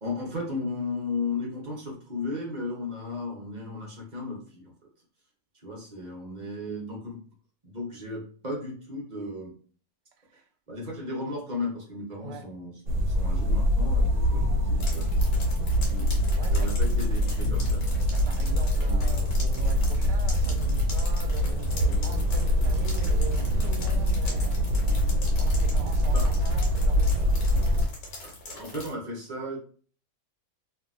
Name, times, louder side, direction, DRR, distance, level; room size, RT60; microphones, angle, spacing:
voice 1, 0.0-4.7 5.6-7.2 7.6-9.5 10.7-16.1 16.5-17.8 26.1-26.2 28.2-29.6, left 2 dB, 40° right, 0.6 m, -35 dB
sound 1, 12.9-27.9, equal, 70° right, 1.0 m, -24 dB
sound 2, 14.4-26.3, right 1 dB, 45° left, 0.8 m, -41 dB
sound 3, 14.8-28.9, left 1 dB, 90° left, 1.5 m, -42 dB
voice 2, 16.4-16.8 18.1-27.8, right 6 dB, 90° right, 1.2 m, -42 dB
2.8 x 2.6 x 2.5 m
omnidirectional pair, 1.8 m